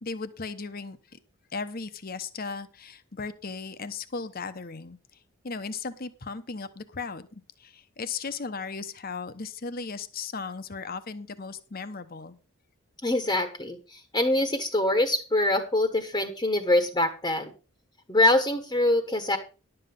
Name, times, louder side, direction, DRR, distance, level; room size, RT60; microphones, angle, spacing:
voice 1, 0.0-1.2 1.5-5.0 5.4-12.3, left 4 dB, 45° left, 12 dB, 0.9 m, -36 dB
voice 2, 13.0-17.5 18.1-19.4, left 1 dB, 20° left, 7 dB, 1.1 m, -24 dB
11.5 x 7.9 x 5.4 m, 0.36 s
head